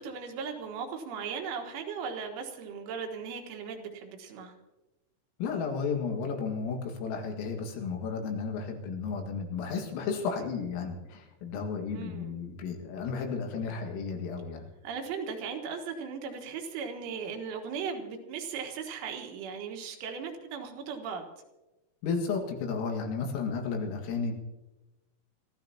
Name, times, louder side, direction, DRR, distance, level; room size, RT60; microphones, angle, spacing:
voice 1, 0.0-4.5 11.9-12.4 14.8-21.3, right 6 dB, 75° right, 3 dB, 3.9 m, -37 dB
voice 2, 5.4-14.6 22.0-24.3, left 5 dB, 85° left, 2 dB, 4.6 m, -33 dB
25.0 x 15.0 x 2.9 m, 1.1 s
omnidirectional pair, 5.8 m